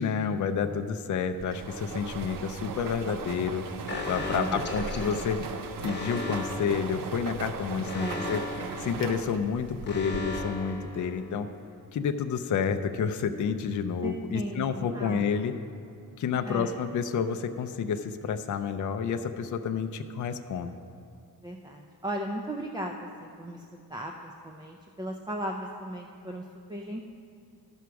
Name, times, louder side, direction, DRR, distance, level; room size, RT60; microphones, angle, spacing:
voice 1, 0.0-3.6 4.1-5.4 5.8-8.4 8.8-11.5 11.9-15.5 16.2-20.7, left 6 dB, 50° left, 7 dB, 0.5 m, -29 dB
sound 1, 1.4-10.7, right 5 dB, 60° right, 0.6 m, -38 dB
Alarm, 3.9-11.6, left 2 dB, 30° left, 1.0 m, -38 dB
voice 2, 4.3-4.7 8.0-8.4 14.0-15.2 16.4-16.7 21.4-27.1, right 1 dB, 10° right, 2 dB, 0.4 m, -36 dB
13.0 x 6.1 x 4.6 m, 2.4 s
wide cardioid pair, 135°, 39 cm